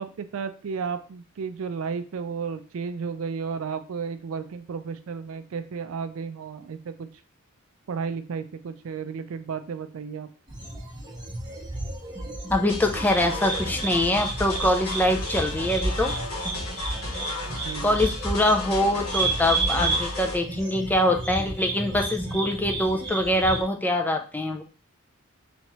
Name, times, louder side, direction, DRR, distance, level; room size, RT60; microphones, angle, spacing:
voice 1, 0.0-7.1 7.9-10.3 17.5-18.0, right 5 dB, 65° right, 10 dB, 0.4 m, -33 dB
sound 1, 10.5-23.6, right 2 dB, 20° right, 0.7 m, -31 dB
voice 2, 12.5-16.2 17.8-24.6, left 1 dB, 10° left, 4 dB, 0.3 m, -24 dB
sound 2, 12.7-20.4, left 2 dB, 65° left, 1.7 m, -34 dB
3.4 x 2.9 x 3.0 m, 0.38 s
head